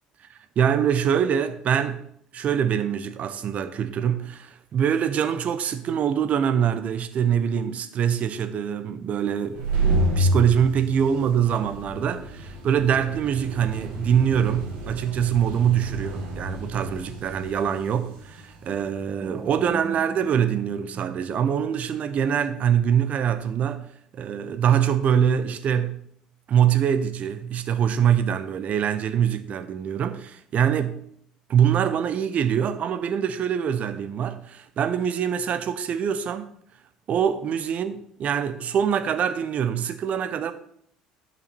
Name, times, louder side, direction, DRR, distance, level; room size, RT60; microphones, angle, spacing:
voice 1, 0.6-2.1 2.3-9.7 10.2-26.0 26.5-31.0 31.5-36.5 37.1-40.5, right 8 dB, 45° right, 1.0 m, -24 dB
sound 1, 9.4-19.9, right 1 dB, 65° right, 2.3 m, -30 dB
sound 2, 19.2-22.0, right 4 dB, 15° right, 1.5 m, -39 dB
11.0 x 5.7 x 4.4 m
figure-of-eight pair, 60°, 3 cm